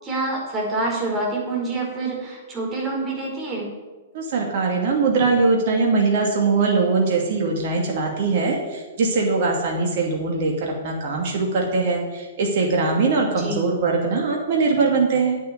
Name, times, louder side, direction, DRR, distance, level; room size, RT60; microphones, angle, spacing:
voice 1, 0.0-3.7 13.4-13.6, right 2 dB, 25° right, -1 dB, 5.1 m, -26 dB
voice 2, 4.1-15.4, right 4 dB, 50° right, 0 dB, 2.5 m, -21 dB
9.1 x 8.3 x 9.4 m, 1.3 s
figure-of-eight pair, 110°, 0 cm